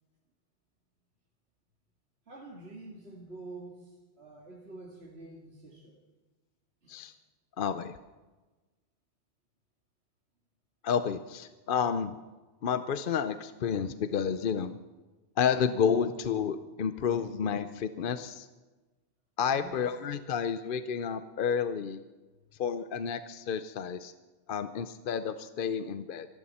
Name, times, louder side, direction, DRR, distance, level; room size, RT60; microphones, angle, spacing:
voice 1, 2.3-6.0 6.8-7.1 19.5-19.8, right 2 dB, 60° right, -2 dB, 2.2 m, -47 dB
voice 2, 7.6-7.9 10.8-12.2 12.6-14.8 15.4-18.5 19.4-22.0 22.6-24.1 24.5-26.3, left 7 dB, 55° left, 11 dB, 0.7 m, -30 dB
26.0 x 12.0 x 4.2 m, 1.2 s
omnidirectional pair, 1.2 m